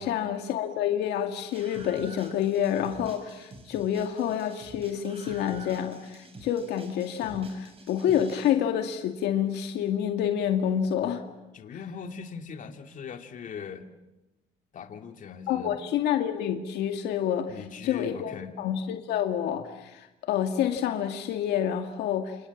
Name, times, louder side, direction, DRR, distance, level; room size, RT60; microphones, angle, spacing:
voice 1, 0.0-11.2 15.5-17.6 17.8-22.4, left 9 dB, 80° left, 5 dB, 2.3 m, -28 dB
Screaming, 1.5-8.5, right 3 dB, 35° right, 6.5 m, -48 dB
voice 2, 11.5-13.9 14.7-15.7 17.5-18.5, left 6 dB, 50° left, 5 dB, 2.8 m, -40 dB
29.0 x 27.5 x 7.3 m, 1.0 s
cardioid pair, 110°, 17 cm